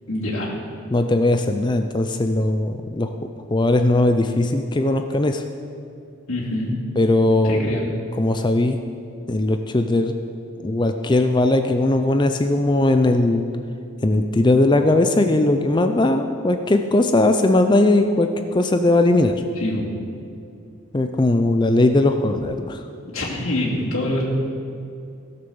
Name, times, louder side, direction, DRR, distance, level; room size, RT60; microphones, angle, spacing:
voice 1, 0.1-0.5 6.3-6.7 7.4-7.8 19.6-19.9 23.1-24.3, left 1 dB, 70° left, -6 dB, 2.5 m, -25 dB
voice 2, 0.9-3.2 3.5-5.4 7.0-7.8 8.2-8.8 9.3-10.2 10.6-13.4 14.0-19.4 20.9-22.8, left 2 dB, 20° left, 7 dB, 0.4 m, -19 dB
16.0 x 6.8 x 7.0 m, 2.5 s
head